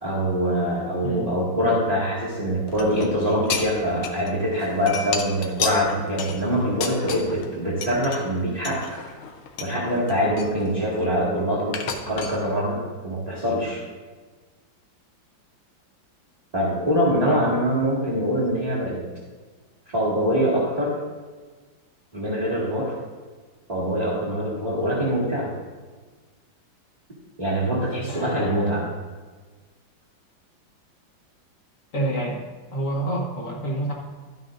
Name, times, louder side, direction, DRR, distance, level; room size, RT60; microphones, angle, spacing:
voice 1, 0.0-9.1 9.6-13.8 16.5-19.0 19.9-21.0 22.1-22.9 23.7-25.5 27.4-28.8, equal, 20° right, -6 dB, 2.0 m, -24 dB
voice 2, 1.0-1.3 17.2-17.5 28.1-28.8 31.9-32.4 32.7-33.9, right 1 dB, 45° left, -2 dB, 1.6 m, -28 dB
sound 1, 2.7-4.3 4.6-7.5 7.8-8.2 8.6-9.7 10.1-11.3 11.7-12.4, left 6 dB, 85° left, 1.6 m, -32 dB
12.0 x 9.3 x 2.6 m, 1.4 s
omnidirectional pair, 2.2 m